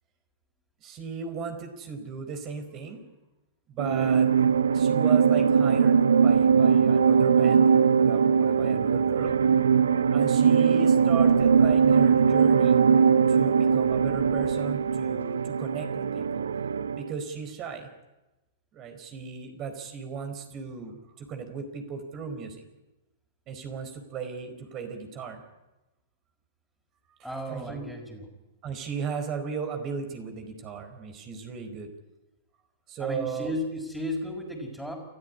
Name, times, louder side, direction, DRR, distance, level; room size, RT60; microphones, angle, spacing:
voice 1, 0.8-3.0 3.7-4.3 4.7-7.7 8.0-9.3 10.1-12.8 13.3-16.4 17.0-17.9 18.7-22.6 23.5-25.4 27.5-27.9 28.6-31.9 32.9-33.5, right 5 dB, 35° right, 6 dB, 4.6 m, -36 dB
sound 1, 3.8-17.1, right 6 dB, 75° right, 0.8 m, -21 dB
voice 2, 27.2-28.3 33.0-35.0, left 1 dB, 5° right, -3 dB, 5.4 m, -34 dB
29.0 x 14.0 x 9.9 m, 1.0 s
figure-of-eight pair, 105°, 0 cm